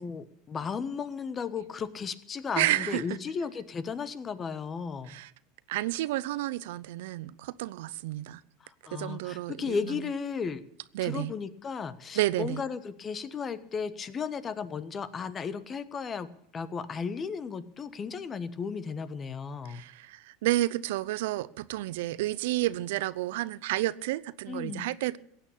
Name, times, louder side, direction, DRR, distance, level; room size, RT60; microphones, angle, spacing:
voice 1, 0.0-5.2 8.8-10.6 11.0-16.3 16.5-19.8 24.5-24.9, left 5 dB, 30° left, 1.2 m, -35 dB
voice 2, 2.6-3.2 5.1-5.3 5.7-8.4 8.9-9.8 10.9-11.3 12.1-12.6 19.7-25.2, right 16 dB, 75° right, 0.6 m, -30 dB
16.0 x 8.8 x 8.5 m
supercardioid pair, 105°, 0 cm